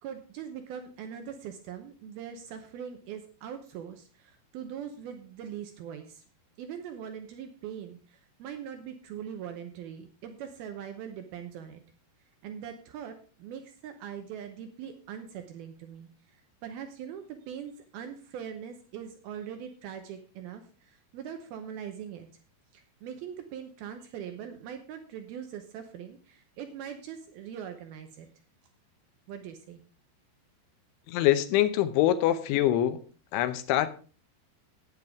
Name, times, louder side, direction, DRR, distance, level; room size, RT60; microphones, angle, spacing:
voice 1, 0.0-6.2 6.6-11.8 12.4-16.1 16.6-20.6 20.9-22.3 22.7-28.3 29.3-29.8, right 8 dB, 85° right, 6 dB, 2.1 m, -41 dB
voice 2, 31.1-33.0 33.3-33.9, left 13 dB, 80° left, 11 dB, 3.0 m, -24 dB
12.0 x 9.7 x 3.6 m, 0.37 s
omnidirectional pair, 5.6 m